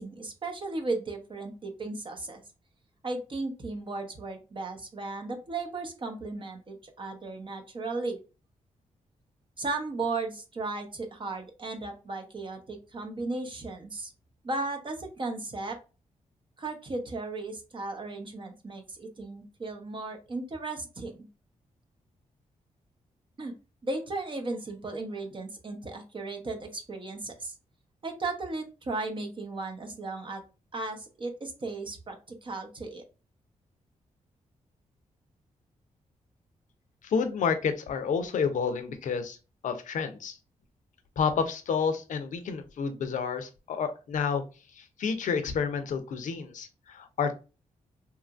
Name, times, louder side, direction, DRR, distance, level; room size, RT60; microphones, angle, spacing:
voice 1, 0.0-2.4 3.0-8.2 9.6-14.1 14.4-15.8 16.6-21.1 23.4-23.5 23.8-27.5 28.0-30.4 30.7-33.0, right 3 dB, 40° right, 4 dB, 0.7 m, -35 dB
voice 2, 37.0-39.4 39.6-40.4 41.2-44.4 44.7-47.3, left 6 dB, 70° left, 9 dB, 0.5 m, -30 dB
2.9 x 2.5 x 2.3 m, 0.31 s
cardioid pair, 75°, 13 cm